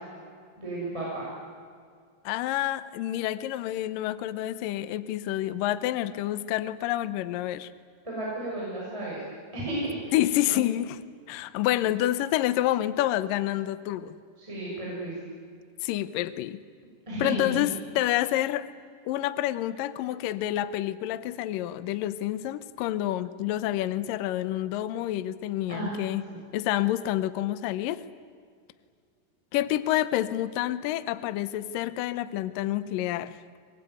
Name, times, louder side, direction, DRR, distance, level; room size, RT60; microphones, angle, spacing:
voice 1, 0.6-1.3 8.0-9.2 9.5-10.6 14.4-15.1 17.1-17.6 25.7-25.9 26.3-26.4, right 1 dB, 5° right, -6 dB, 6.4 m, -33 dB
voice 2, 2.3-7.7 10.1-11.0 11.3-14.2 15.8-16.6 17.2-18.7 19.1-26.2 26.5-28.0 29.5-33.4, left 14 dB, 75° left, 14 dB, 2.1 m, -28 dB
24.5 x 21.0 x 9.4 m, 2.1 s
omnidirectional pair, 4.8 m